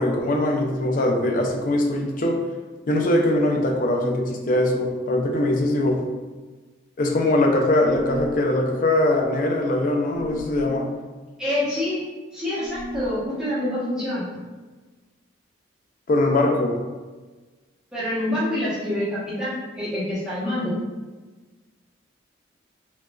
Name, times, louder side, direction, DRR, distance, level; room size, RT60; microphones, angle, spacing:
voice 1, 0.0-2.4 2.9-6.0 7.0-10.9 16.1-16.8, left 1 dB, 45° left, 1 dB, 0.4 m, -21 dB
sound 1, 7.8-8.5 10.1-10.7 12.6-13.3, equal, 40° right, 0.7 m, -36 dB
voice 2, 11.4-12.0 12.3-14.3 17.9-20.7, left 1 dB, 5° right, -11 dB, 0.9 m, -26 dB
3.8 x 2.3 x 2.3 m, 1.3 s
head